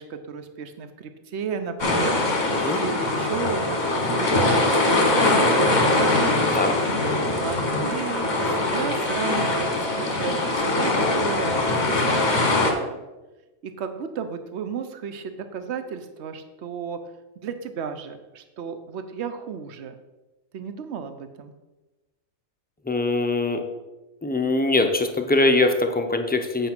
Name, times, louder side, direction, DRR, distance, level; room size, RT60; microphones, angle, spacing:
voice 1, 0.0-6.1 7.4-13.0 13.6-17.0 17.4-20.0 20.5-21.5, right 6 dB, 60° right, 9 dB, 1.0 m, -34 dB
sound 1, 1.8-12.7, left 2 dB, 35° left, 1.3 m, -22 dB
sound 2, 1.9-12.7, left 3 dB, 75° right, 3.9 m, -40 dB
voice 2, 22.9-23.6 24.2-26.7, left 2 dB, 15° left, 4 dB, 0.3 m, -22 dB
8.3 x 5.1 x 6.0 m, 1.1 s
omnidirectional pair, 1.4 m